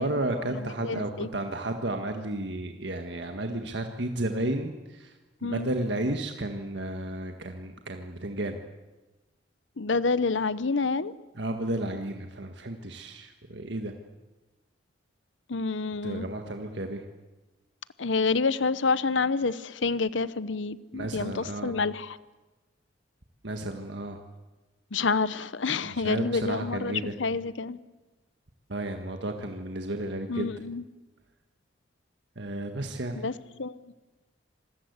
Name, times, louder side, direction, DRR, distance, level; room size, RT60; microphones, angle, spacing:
voice 1, 0.0-8.6 11.4-13.9 16.0-17.0 20.9-21.7 23.4-24.2 25.8-27.1 28.7-30.5 32.3-33.2, right 1 dB, 65° right, 5 dB, 1.7 m, -33 dB
voice 2, 0.5-1.3 5.4-5.7 9.8-11.1 15.5-16.3 18.0-22.2 24.9-27.8 30.3-30.8 33.2-33.3 33.6-33.8, left 4 dB, 80° left, 16 dB, 0.9 m, -28 dB
27.0 x 20.5 x 8.2 m, 1.2 s
head